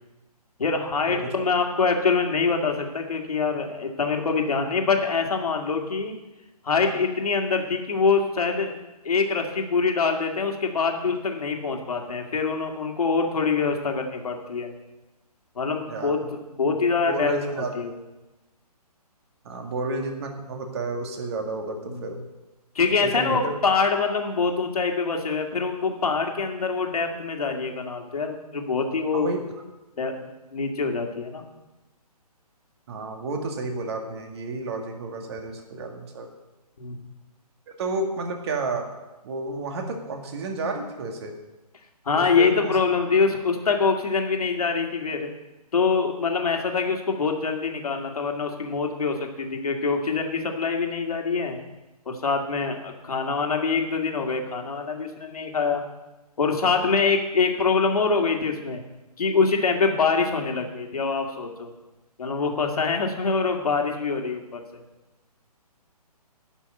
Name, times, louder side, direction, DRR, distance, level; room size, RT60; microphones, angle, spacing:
voice 1, 0.6-6.2 6.6-8.7 9.0-14.7 15.6-16.2 16.6-17.3 17.7-17.9 21.9-22.1 22.8-29.3 30.0-31.4 36.8-37.0 42.1-45.3 45.7-51.6 52.1-55.8 56.4-58.8 59.2-61.7 62.2-64.8, left 4 dB, 65° left, 3 dB, 2.2 m, -24 dB
voice 2, 17.1-17.7 19.4-22.2 23.0-23.6 29.1-29.4 32.9-36.3 37.8-38.9 39.2-41.3 42.2-42.8, right 2 dB, 40° right, 3 dB, 2.1 m, -31 dB
11.0 x 6.2 x 8.9 m, 1.1 s
figure-of-eight pair, 140°, 20 cm